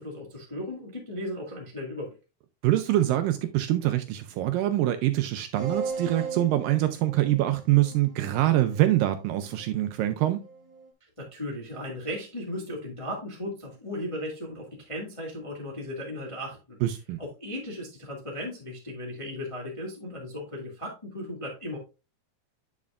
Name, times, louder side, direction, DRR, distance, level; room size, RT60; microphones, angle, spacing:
voice 1, 0.0-2.1 11.2-16.8 17.2-21.8, left 1 dB, 20° left, 0.8 m, -36 dB
voice 2, 2.6-10.4 16.8-17.2, right 14 dB, 80° right, 2.1 m, -24 dB
sound 1, 5.5-10.9, right 5 dB, 40° right, 2.1 m, -39 dB
8.3 x 7.1 x 2.4 m
omnidirectional pair, 4.3 m